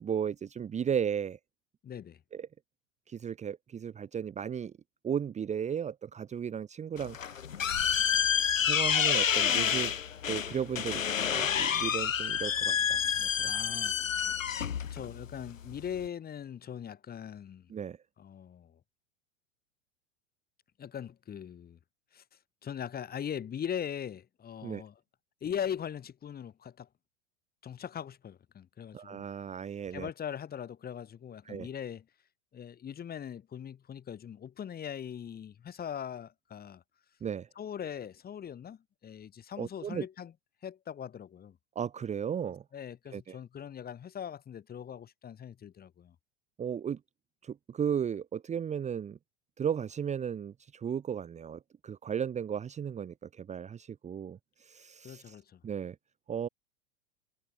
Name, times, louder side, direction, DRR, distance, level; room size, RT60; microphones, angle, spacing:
voice 1, 0.0-1.4 2.3-2.5 3.1-4.7 5.0-7.4 8.6-9.9 10.3-13.5 17.7-18.0 24.6-24.8 28.9-30.1 31.4-31.7 37.2-37.5 39.6-40.0 41.7-42.6 43.1-43.4 46.6-47.0 47.4-49.2 49.6-55.4 55.6-55.9 56.3-56.5, right 8 dB, 15° right, 1.4 m, -35 dB
voice 2, 1.8-2.2 13.4-14.4 14.9-17.7 18.2-18.8 20.8-21.8 22.1-22.2 22.6-24.9 25.4-26.9 27.6-29.3 29.9-32.0 32.5-36.8 37.6-40.3 40.6-41.6 42.7-46.2 55.0-55.6, left 8 dB, 25° left, 5.1 m, -40 dB
sound 1, 7.0-16.1, left 8 dB, 80° left, 0.9 m, -29 dB
figure-of-eight pair, 95°, 39 cm